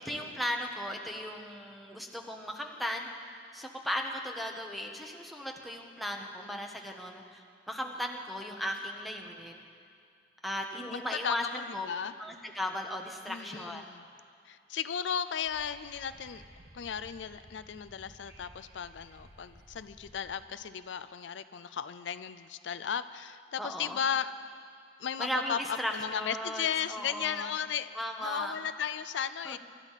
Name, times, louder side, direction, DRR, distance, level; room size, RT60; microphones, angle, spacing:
voice 1, 0.0-3.1 3.5-9.6 10.4-11.9 12.2-13.8 23.6-24.0 25.2-27.5 27.9-28.6 29.4-29.6, equal, ahead, 1 dB, 1.2 m, -36 dB
voice 2, 10.9-12.2 13.3-14.1 14.4-16.4 16.7-24.3 25.0-27.9 28.2-29.6, left 8 dB, 80° left, 13 dB, 0.4 m, -35 dB
Wind / Subway metro underground, 15.4-20.4, right 1 dB, 60° right, 1.8 m, -55 dB
24.0 x 12.5 x 4.1 m, 2.3 s
head